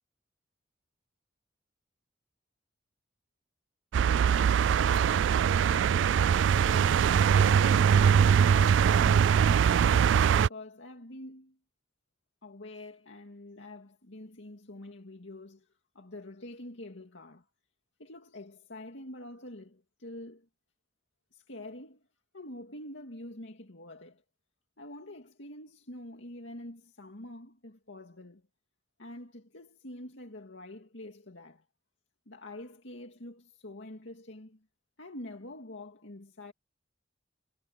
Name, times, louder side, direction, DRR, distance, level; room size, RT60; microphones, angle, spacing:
sound 1, 3.9-10.5, right 7 dB, 75° right, 0.3 m, -22 dB
voice 1, 5.6-11.6 12.4-15.7 15.9-17.5 18.0-20.5 21.3-22.0 22.3-24.2 24.8-28.5 29.0-31.6 32.3-34.7 35.0-36.5, left 1 dB, 85° left, 2.2 m, -46 dB
head